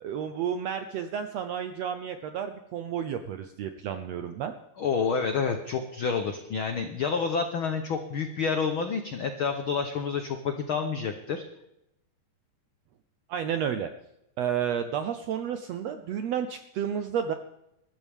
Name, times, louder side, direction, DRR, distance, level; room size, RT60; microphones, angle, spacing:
voice 1, 0.0-4.5 13.3-13.9 14.4-17.3, right 8 dB, 80° right, 8 dB, 1.5 m, -31 dB
voice 2, 4.8-11.4, left 5 dB, 85° left, 6 dB, 1.1 m, -29 dB
21.0 x 13.5 x 3.6 m, 0.82 s
omnidirectional pair, 3.8 m